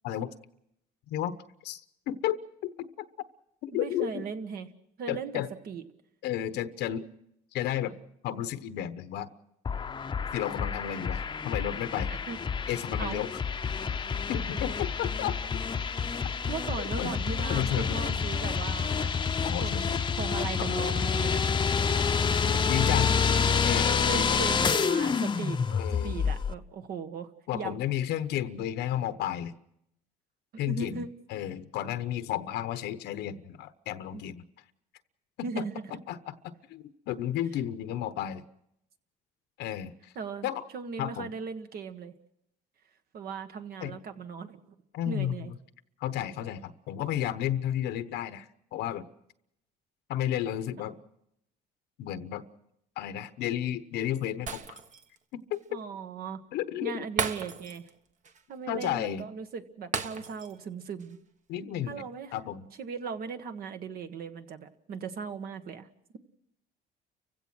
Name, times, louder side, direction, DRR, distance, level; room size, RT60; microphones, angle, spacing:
voice 1, 2.1-2.9 3.6-4.2 5.1-5.5 6.2-7.0 7.5-7.9 8.2-9.3 10.3-12.1 12.7-13.3 14.3-15.3 17.0-17.1 17.5-18.2 19.4-19.8 20.6-20.9 22.4-23.1 23.6-24.4 25.7-26.2 27.5-29.5 30.6-34.4 35.4-35.6 35.9-38.4 39.6-39.9 40.4-40.6 41.0-41.3 43.8-44.0 44.9-45.5 46.0-49.0 50.1-51.0 52.0-52.4 53.0-54.8 55.3-55.8 56.5-57.0 58.7-59.2 61.5-62.0 62.3-62.7, left 11 dB, 85° left, 11 dB, 1.1 m, -32 dB
voice 2, 3.7-4.7 5.0-5.8 12.3-12.4 13.0-13.2 16.5-19.1 19.6-21.5 23.3-23.6 24.0-25.6 25.9-27.7 30.5-31.1 34.1-34.2 35.4-36.0 40.1-42.1 43.1-44.6 45.0-45.5 55.7-56.4 56.8-57.8 58.5-61.2 61.8-62.3 62.8-65.9, right 5 dB, 60° right, 8 dB, 1.6 m, -38 dB
sound 1, 9.6-26.5, left 6 dB, 25° left, 0.8 m, -28 dB
Shatter, 54.5-55.2 55.5-55.6 57.2-57.9 58.2-58.4 59.9-60.6 61.0-61.1, right 6 dB, 45° right, 1.3 m, -34 dB
30.0 x 16.0 x 6.2 m, 0.80 s
cardioid pair, 110°, 17 cm